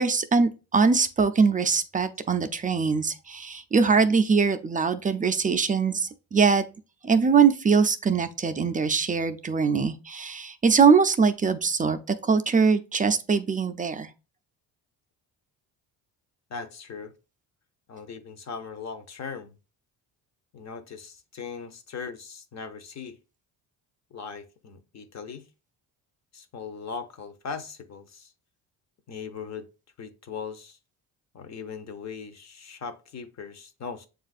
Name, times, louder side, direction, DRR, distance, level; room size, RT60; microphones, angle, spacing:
voice 1, 0.0-6.6 7.0-14.1, right 5 dB, 20° right, 0.3 m, -22 dB
voice 2, 16.5-17.1 17.9-19.6 20.5-23.2 24.1-25.5 26.3-28.3 29.1-29.7 30.0-30.8 31.3-34.1, left 5 dB, 40° left, 0.7 m, -39 dB
7.2 x 2.4 x 2.4 m
cardioid pair, 85°, 42 cm